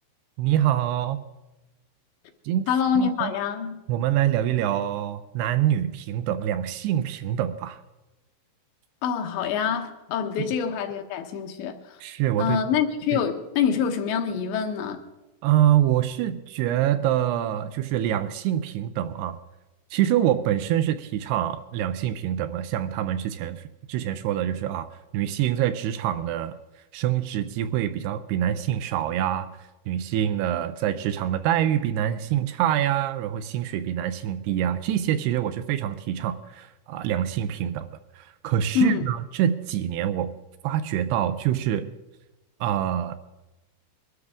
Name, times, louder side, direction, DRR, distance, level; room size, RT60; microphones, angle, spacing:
voice 1, 0.4-1.2 2.5-2.7 3.0-3.3 3.9-7.8 10.5-10.6 12.0-12.6 13.1-13.2 15.4-19.4 19.9-24.9 25.1-26.6 26.9-29.5 29.9-37.9 38.2-40.4 40.6-41.9 42.6-43.2, right 11 dB, 80° right, 2.5 m, -25 dB
voice 2, 2.7-3.8 9.0-11.8 12.4-15.0 38.7-39.0, left 7 dB, 85° left, 3.4 m, -25 dB
22.5 x 13.0 x 3.6 m
omnidirectional pair, 5.0 m